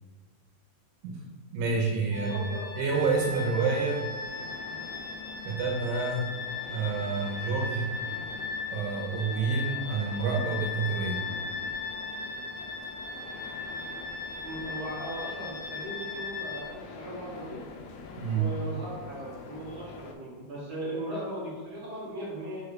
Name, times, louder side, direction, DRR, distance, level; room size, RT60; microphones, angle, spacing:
voice 1, 1.5-4.0 5.5-6.3 6.7-7.9 8.7-11.2 18.2-18.5, right 4 dB, 90° right, -3 dB, 3.3 m, -28 dB
sound 1, 2.1-16.6, left 4 dB, 65° left, 3.4 m, -37 dB
voice 2, 2.1-2.7 14.4-17.7 18.3-22.6, right 1 dB, 70° right, -10 dB, 1.2 m, -38 dB
sound 2, 3.1-20.1, left 4 dB, 80° left, 2.7 m, -46 dB
6.9 x 6.5 x 2.4 m, 1.5 s
omnidirectional pair, 5.6 m